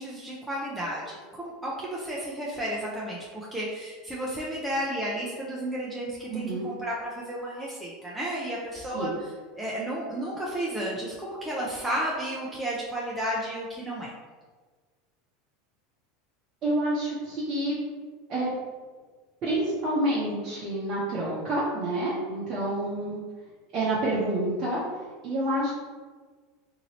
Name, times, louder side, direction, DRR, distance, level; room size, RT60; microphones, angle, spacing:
voice 1, 0.0-9.1 9.6-14.1, right 1 dB, 10° right, -6 dB, 0.6 m, -32 dB
voice 2, 6.3-6.7 8.9-9.1 16.6-17.8 18.3-18.5 19.4-23.2 23.7-24.8 25.2-25.7, right 1 dB, 45° right, -8 dB, 0.8 m, -28 dB
2.8 x 2.7 x 3.0 m, 1.5 s
hypercardioid pair, 85°, 0 cm